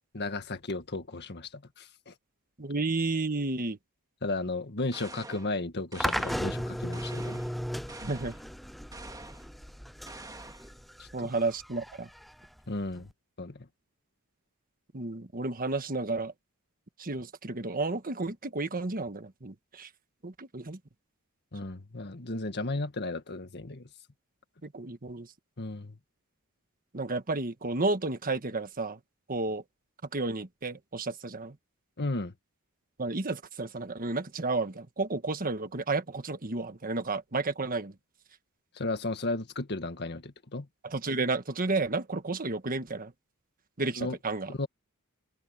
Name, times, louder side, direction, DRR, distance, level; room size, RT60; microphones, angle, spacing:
voice 1, 0.1-2.1 4.2-7.4 11.0-11.3 12.7-13.1 13.4-13.7 21.5-23.9 25.6-26.0 32.0-32.3 38.8-40.7 44.0-44.2 44.5-44.7, left 2 dB, 50° left, 1.7 m, -34 dB
voice 2, 2.6-3.8 8.0-8.3 11.1-12.1 14.9-16.3 17.0-19.9 20.2-20.8 24.6-25.3 26.9-29.0 29.3-29.6 30.1-31.6 33.0-37.9 40.8-43.1 43.8-44.5, right 3 dB, 40° right, 1.4 m, -32 dB
sound 1, 4.9-5.5 5.9-6.5 6.9-7.5 7.9-8.4 8.9-9.5 10.1-10.7, right 3 dB, 15° right, 3.0 m, -46 dB
sound 2, 6.0-13.1, equal, ahead, 0.3 m, -36 dB
open air
head